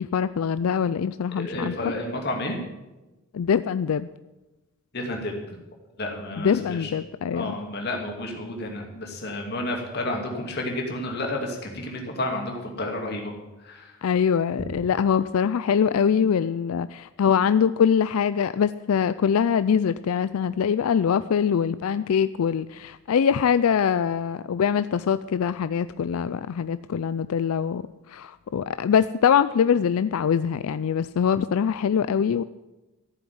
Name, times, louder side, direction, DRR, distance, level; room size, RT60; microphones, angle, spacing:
voice 1, 0.0-1.7 3.3-4.1 6.4-7.5 14.0-32.4, left 7 dB, 80° left, 14 dB, 0.4 m, -23 dB
voice 2, 1.4-2.6 4.9-5.4 6.0-6.9 7.3-13.3 13.6-13.9, left 1 dB, 45° left, 1 dB, 2.5 m, -31 dB
14.0 x 7.1 x 9.3 m, 1.1 s
head